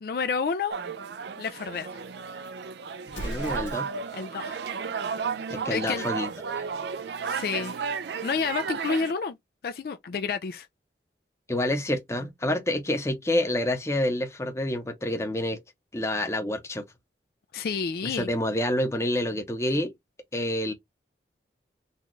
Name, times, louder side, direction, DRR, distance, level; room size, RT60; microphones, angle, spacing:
voice 1, 0.0-0.8 1.4-1.9 4.1-4.6 5.7-6.1 7.2-7.8 8.2-9.4 9.6-10.7 17.5-18.3, left 5 dB, 55° left, 0.3 m, -29 dB
sound 1, 0.7-9.1, right 6 dB, 75° right, 0.4 m, -33 dB
Explosion, 3.0-4.2, equal, 85° left, 0.9 m, -37 dB
voice 2, 3.2-3.9 5.5-6.6 11.5-15.6 15.9-16.8 18.0-19.9 20.3-20.7, left 1 dB, 15° left, 0.7 m, -28 dB
4.1 x 2.4 x 3.0 m
head